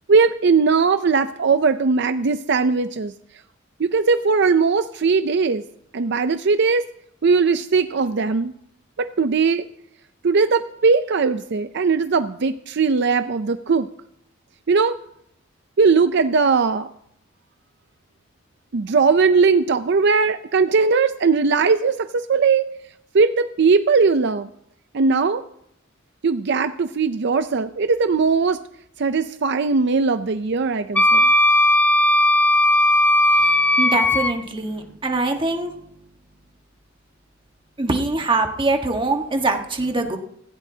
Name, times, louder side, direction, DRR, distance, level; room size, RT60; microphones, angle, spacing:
voice 1, 0.1-3.1 3.8-5.6 5.9-6.9 7.2-8.5 9.0-9.7 10.2-13.9 14.7-15.0 15.8-16.9 18.7-22.6 23.1-24.5 24.9-25.4 26.2-28.6 29.0-31.3, right 4 dB, 60° right, 10 dB, 0.5 m, -19 dB
Wind instrument woodwind instrument, 31.0-34.3, left 1 dB, 10° left, 0.7 m, -16 dB
voice 2, 33.8-35.7 37.8-40.2, right 2 dB, 25° right, 4 dB, 1.4 m, -23 dB
17.0 x 16.0 x 2.8 m, 0.74 s
head